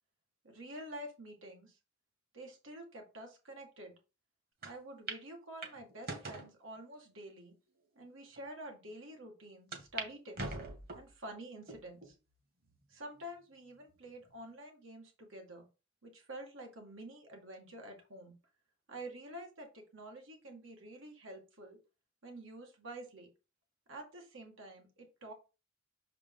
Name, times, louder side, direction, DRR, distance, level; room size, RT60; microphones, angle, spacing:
voice 1, 0.4-1.8 2.3-3.9 4.6-7.5 8.0-10.6 10.9-12.2 12.9-15.7 16.0-18.4 18.9-21.8 22.2-23.3 23.9-25.3, right 1 dB, 85° right, 2 dB, 2.1 m, -48 dB
sound 1, 4.6-4.7 5.1-5.2 5.6-6.5 7.2-7.3 8.0-8.1 8.4-8.5 9.7-10.1 10.4-11.1 11.7-12.1 12.7-12.8 13.9-14.3, right 3 dB, 50° right, 1.7 m, -42 dB
6.3 x 4.9 x 3.8 m, 0.31 s
head